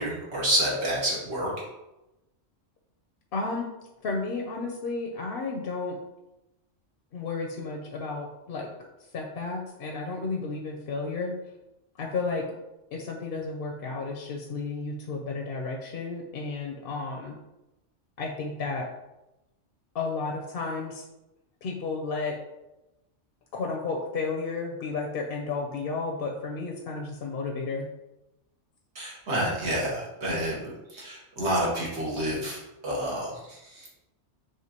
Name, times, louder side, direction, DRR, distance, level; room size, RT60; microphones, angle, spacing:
voice 1, 0.0-1.5 28.9-33.9, right 1 dB, 65° right, -5 dB, 1.4 m, -29 dB
voice 2, 3.3-3.7 4.0-6.0 7.1-8.7 9.1-11.3 12.0-12.5 12.9-17.4 18.2-18.9 19.9-21.0 21.6-22.4 23.5-27.9, left 4 dB, 60° left, 1 dB, 0.7 m, -32 dB
4.9 x 3.2 x 2.8 m, 0.96 s
omnidirectional pair, 1.2 m